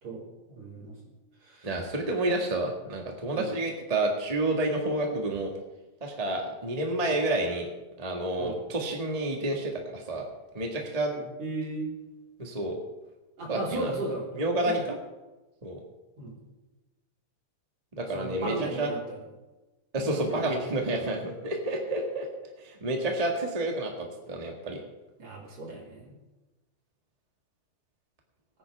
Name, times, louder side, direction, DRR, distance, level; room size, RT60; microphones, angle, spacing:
voice 1, 0.5-1.0 1.4-1.8 3.3-3.5 8.4-8.6 11.2-11.9 13.4-14.8 16.2-16.4 18.0-19.2 20.0-20.5 25.2-26.2, right 2 dB, 50° right, -6 dB, 5.2 m, -36 dB
voice 2, 1.6-5.5 6.0-7.7 8.0-10.2 10.5-11.1 12.4-12.8 13.5-13.9 14.4-14.8 15.6-15.8 18.0-18.9 19.9-22.3 22.6-24.8, right 2 dB, 20° right, 1 dB, 1.1 m, -29 dB
23.0 x 9.7 x 3.5 m, 1.1 s
omnidirectional pair, 3.5 m